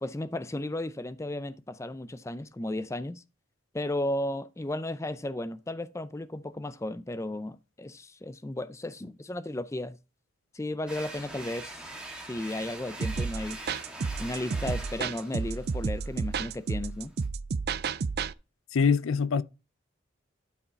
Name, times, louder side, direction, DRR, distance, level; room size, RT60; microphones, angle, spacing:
voice 1, 0.0-3.2 3.7-10.0 10.5-11.9 12.2-13.6 14.2-17.1, left 1 dB, 15° left, 0.4 m, -34 dB
sound 1, 10.9-17.3, right 2 dB, 5° right, 1.7 m, -44 dB
sound 2, 13.0-18.3, right 5 dB, 50° right, 0.4 m, -31 dB
voice 2, 18.7-19.4, left 5 dB, 80° left, 0.5 m, -24 dB
11.5 x 4.9 x 4.1 m
head